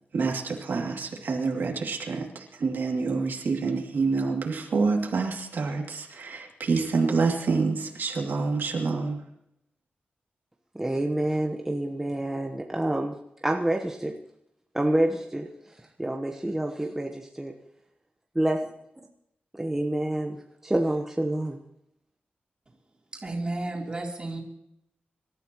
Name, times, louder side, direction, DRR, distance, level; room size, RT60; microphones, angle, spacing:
voice 1, 0.1-9.2, right 4 dB, 75° right, 0 dB, 2.6 m, -27 dB
voice 2, 10.8-13.1 13.4-14.1 14.7-15.5 16.0-17.5 18.4-18.7 19.6-21.6, right 1 dB, 10° right, 2 dB, 1.1 m, -27 dB
voice 3, 23.2-24.4, right 2 dB, 25° right, -1 dB, 3.5 m, -32 dB
26.0 x 13.5 x 3.1 m, 0.79 s
wide cardioid pair, 130°, 4 cm